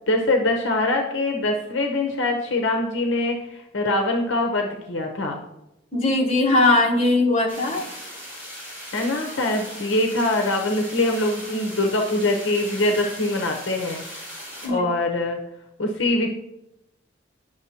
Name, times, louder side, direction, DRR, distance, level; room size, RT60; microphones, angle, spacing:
voice 1, 0.1-5.4 8.9-14.0 14.7-15.4 15.8-16.3, left 2 dB, 70° left, 2 dB, 0.8 m, -23 dB
voice 2, 5.9-7.9 14.6-14.8, left 2 dB, 30° left, -1 dB, 1.2 m, -19 dB
sound 1, 7.5-14.7, equal, 10° right, 3.1 m, -38 dB
9.7 x 6.3 x 2.8 m, 0.87 s
head